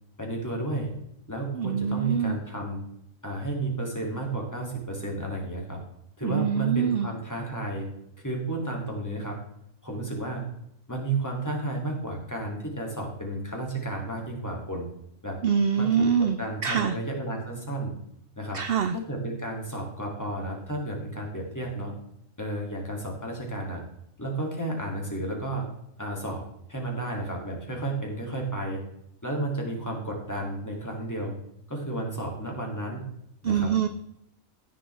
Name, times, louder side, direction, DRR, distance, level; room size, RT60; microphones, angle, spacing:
voice 1, 0.2-0.9 1.3-2.8 3.2-5.8 6.2-7.9 8.2-9.4 9.8-10.4 10.9-14.9 15.2-15.4 15.8-17.9 18.4-18.6 18.9-21.9 22.4-23.8 24.2-25.6 26.0-26.4 26.7-28.8 29.2-31.3 31.7-33.0 33.4-33.7, right 2 dB, 10° left, -1 dB, 2.5 m, -32 dB
voice 2, 1.5-2.4 6.2-7.1 15.4-16.9 18.5-18.9 33.4-33.9, right 7 dB, 65° right, 11 dB, 0.6 m, -25 dB
15.5 x 7.0 x 3.4 m, 0.75 s
omnidirectional pair, 1.4 m